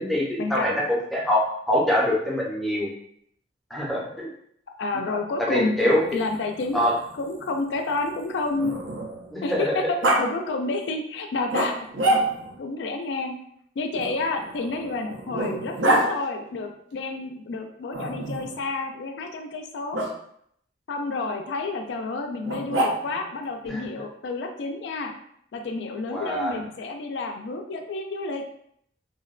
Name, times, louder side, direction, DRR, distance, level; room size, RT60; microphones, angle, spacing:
voice 1, 0.0-1.4 1.7-2.9 3.7-4.3 5.4-6.2 6.7-6.9 9.3-9.9 23.7-23.8 26.1-26.6, left 1 dB, ahead, -4 dB, 0.5 m, -24 dB
voice 2, 4.8-6.9 7.2-8.8 9.4-9.8 10.2-11.9 12.6-13.4 13.8-20.0 20.9-25.1 25.5-28.4, left 3 dB, 75° left, 4 dB, 0.3 m, -30 dB
Growling, 5.9-9.3 10.0-10.2 11.5-12.6 14.0-16.1 17.9-18.6 19.9-20.1 22.4-23.3, right 1 dB, 90° right, 0.5 m, -27 dB
2.7 x 2.1 x 2.3 m, 0.69 s
head